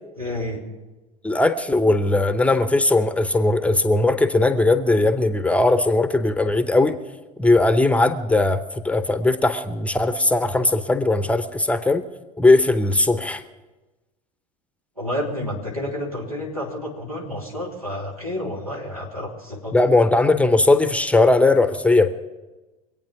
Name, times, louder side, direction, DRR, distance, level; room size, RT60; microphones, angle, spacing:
voice 1, 0.2-0.6 15.0-19.7, left 1 dB, 85° right, -2 dB, 2.9 m, -30 dB
voice 2, 1.2-7.0 7.4-12.0 12.4-13.4 19.7-22.1, left 2 dB, 5° left, 11 dB, 0.7 m, -19 dB
23.5 x 9.0 x 5.8 m, 1.1 s
figure-of-eight pair, 70°, 18 cm